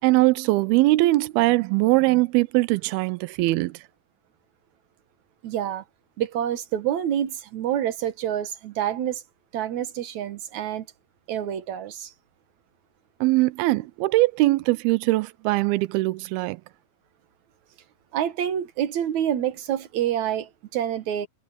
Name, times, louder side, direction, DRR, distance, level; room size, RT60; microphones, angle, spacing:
voice 1, 0.0-3.8 13.2-16.6, right 20 dB, 85° right, 2.5 m, -21 dB
voice 2, 5.4-5.8 6.2-9.2 9.5-10.9 11.3-12.1 18.1-21.3, right 10 dB, 60° right, 2.3 m, -27 dB
omnidirectional pair, 4.4 m